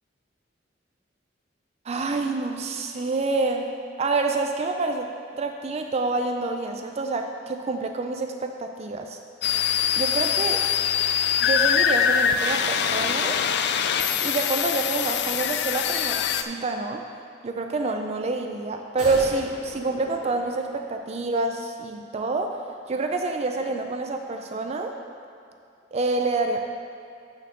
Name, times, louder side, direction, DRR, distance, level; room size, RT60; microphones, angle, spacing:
voice 1, 1.8-3.7 4.0-5.1 5.3-9.2 10.0-10.6 11.4-13.4 14.2-17.0 17.4-22.6 22.9-25.0 25.9-26.6, right 3 dB, 35° right, 4 dB, 0.4 m, -27 dB
sound 1, 9.4-16.4, left 8 dB, 65° left, 0.4 m, -23 dB
sound 2, 19.0-21.3 21.6-21.7, equal, 5° right, 2.0 m, -40 dB
6.5 x 6.3 x 6.5 m, 2.4 s
head